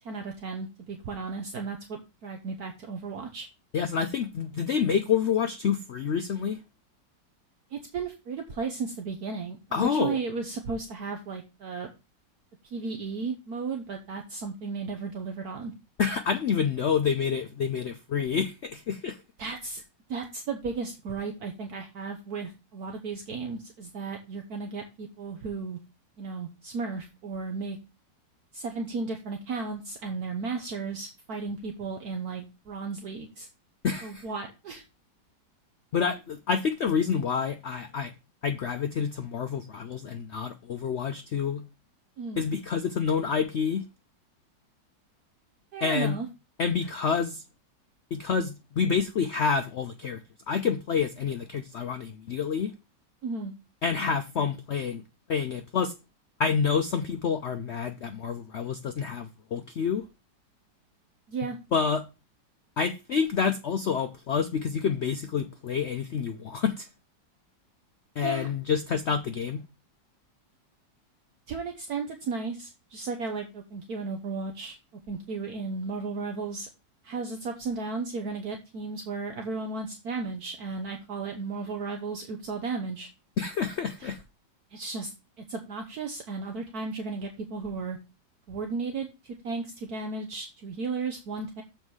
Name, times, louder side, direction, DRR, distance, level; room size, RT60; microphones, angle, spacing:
voice 1, 0.0-3.5 7.7-11.9 12.6-15.7 19.4-19.8 20.1-25.8 26.2-27.8 28.5-33.5 34.0-34.8 42.2-42.4 45.7-46.3 53.2-53.5 61.3-61.6 68.2-68.5 71.5-74.8 75.1-76.7 77.0-83.1 84.0-84.1 84.7-85.1 85.4-88.0 88.5-91.6, right 4 dB, 60° right, 1.4 m, -34 dB
voice 2, 3.7-6.6 9.7-10.2 16.0-19.2 33.8-34.2 35.9-38.1 38.4-41.6 42.4-43.8 45.8-46.2 46.6-47.4 48.1-50.2 50.5-52.7 53.8-55.0 55.3-55.9 56.4-60.0 61.7-62.0 62.8-66.9 68.2-69.6 83.4-84.2, left 6 dB, 80° left, 0.6 m, -28 dB
7.2 x 4.4 x 6.2 m
omnidirectional pair, 1.9 m